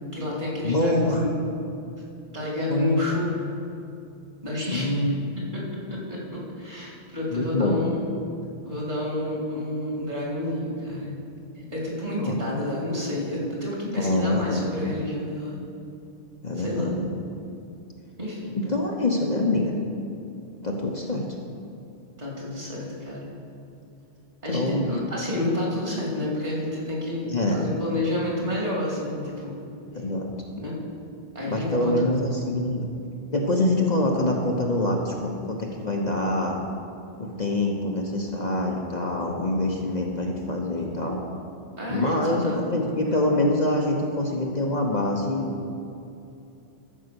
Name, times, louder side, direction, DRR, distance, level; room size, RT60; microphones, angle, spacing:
voice 1, 0.1-1.3 2.3-3.4 4.4-5.0 5.5-8.1 8.6-11.1 11.6-15.6 16.6-16.9 18.2-18.5 22.2-23.3 24.4-29.6 30.5-30.8 31.3-32.1 41.8-42.8, left 1 dB, 45° right, -4 dB, 2.9 m, -29 dB
voice 2, 0.6-1.3 2.7-3.0 4.7-5.2 7.3-7.8 12.2-12.4 13.9-14.8 16.4-17.1 18.5-19.7 20.6-21.3 24.5-25.0 27.3-27.6 29.9-30.3 31.4-32.9 33.3-36.6 37.2-41.2 41.9-45.7, left 1 dB, 40° left, 0 dB, 1.0 m, -25 dB
13.5 x 5.5 x 6.9 m, 2.7 s
omnidirectional pair, 1.1 m